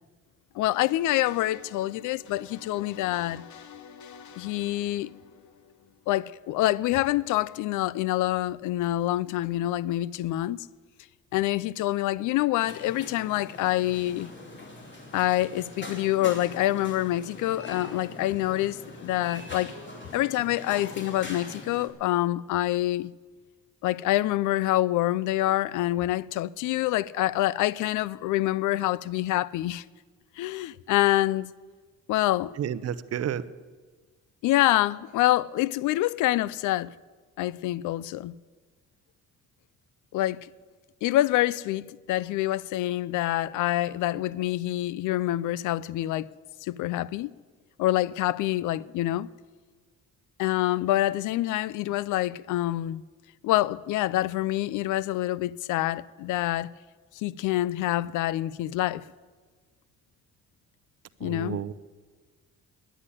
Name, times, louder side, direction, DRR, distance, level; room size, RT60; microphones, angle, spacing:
voice 1, 0.5-3.4 4.4-5.1 6.1-10.7 11.3-14.3 15.1-19.7 20.1-23.1 23.8-29.8 30.4-31.5 32.1-32.6 34.4-36.9 37.4-38.3 40.1-40.5 41.0-46.3 46.6-47.3 47.8-49.3 50.4-53.0 53.4-56.7 57.2-59.0 61.2-61.6, left 15 dB, 85° left, 0.5 m, -26 dB
sound 1, 0.7-6.5, left 7 dB, 70° left, 1.0 m, -49 dB
sound 2, 12.6-21.9, left 2 dB, 40° left, 3.1 m, -43 dB
voice 2, 32.6-33.4 61.2-61.7, right 9 dB, 55° right, 0.7 m, -31 dB
10.0 x 9.9 x 9.8 m
cardioid pair, 90°, 30 cm